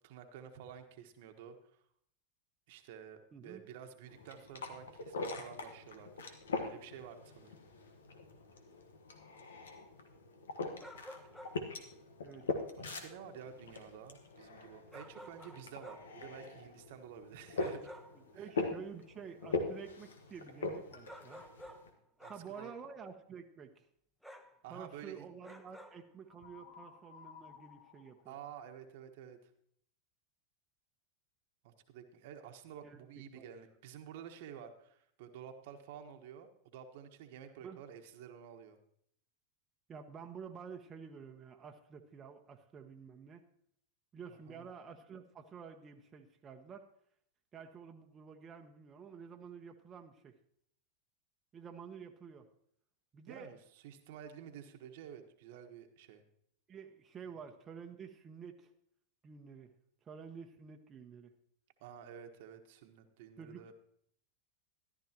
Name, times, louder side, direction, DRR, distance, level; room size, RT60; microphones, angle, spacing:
voice 1, 0.0-1.8 2.7-6.3 6.6-7.5 11.5-11.6 12.8-17.9 18.3-18.5 22.2-22.7 24.6-25.3 28.3-29.5 31.6-38.8 44.5-44.7 53.3-56.2 61.8-63.7, right 8 dB, 65° right, 6 dB, 1.2 m, -51 dB
voice 2, 3.3-3.6 12.2-12.4 18.3-21.4 22.3-23.8 24.7-28.3 32.8-33.0 33.3-33.5 37.6-37.8 39.9-43.4 44.1-46.8 47.5-50.3 51.5-52.5 53.1-53.5 56.7-58.7 59.2-59.7 60.0-61.3 63.4-63.7, right 6 dB, 30° right, 4 dB, 0.9 m, -50 dB
sound 1, 4.1-21.9, left 3 dB, 85° left, 1.4 m, -42 dB
sound 2, 9.3-9.4 10.8-11.7 14.9-16.2 17.6-18.2 21.1-21.9 22.2-22.5 24.2-24.6 25.4-26.1, equal, ahead, 1.0 m, -52 dB
sound 3, 22.4-23.0 26.3-29.0, left 8 dB, 60° left, 1.0 m, -57 dB
13.5 x 11.5 x 2.9 m, 0.68 s
hypercardioid pair, 95°, 0 cm